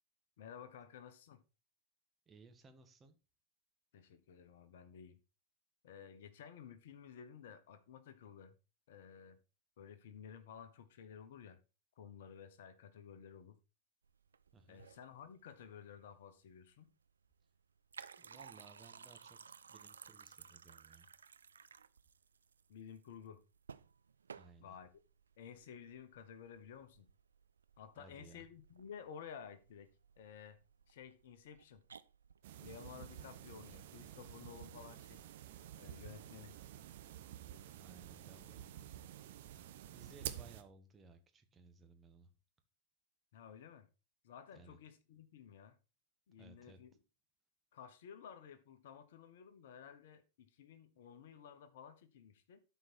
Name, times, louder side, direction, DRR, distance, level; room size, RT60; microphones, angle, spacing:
voice 1, 0.4-1.4 3.9-5.2 5.8-8.5 8.9-9.4 9.8-11.6 12.0-13.6 14.7-16.9 22.7-23.4 24.6-24.9 25.4-27.1 27.8-29.9 30.2-30.6 30.9-31.8 32.6-35.2 35.8-36.6 43.3-43.9 44.2-45.8 46.3-47.0 47.7-52.6, left 7 dB, 55° left, 1.1 m, -54 dB
voice 2, 2.3-3.2 14.5-14.9 18.2-21.1 24.3-24.8 27.9-28.5 37.7-38.9 39.2-42.3 44.5-44.8 46.4-46.8, right 4 dB, 20° right, 1.4 m, -61 dB
sound 1, 14.0-33.6, right 6 dB, 70° right, 0.4 m, -58 dB
sound 2, 32.4-40.6, right 11 dB, 55° right, 1.0 m, -50 dB
12.5 x 4.7 x 4.3 m
figure-of-eight pair, 90°, 0 cm